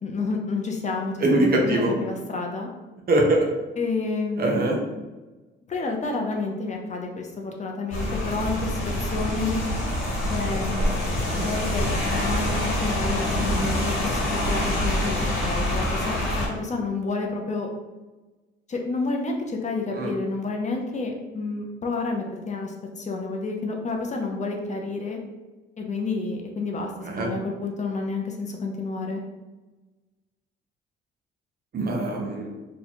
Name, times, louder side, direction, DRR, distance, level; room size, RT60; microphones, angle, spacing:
voice 1, 0.0-2.7 3.8-4.7 5.7-9.6 10.3-10.9 11.4-16.2 16.5-17.7 18.7-25.2 25.8-26.9 27.2-29.2, left 3 dB, 35° left, 2 dB, 0.6 m, -30 dB
voice 2, 1.2-1.9 3.1-3.4 4.4-4.8 11.4-11.5 19.9-20.1 27.0-27.3 31.7-32.5, right 1 dB, 50° right, 0 dB, 0.8 m, -22 dB
Rain, 7.9-16.5, left 1 dB, 90° left, 1.1 m, -26 dB
2.8 x 2.3 x 4.1 m, 1.2 s
cardioid pair, 90°, 20 cm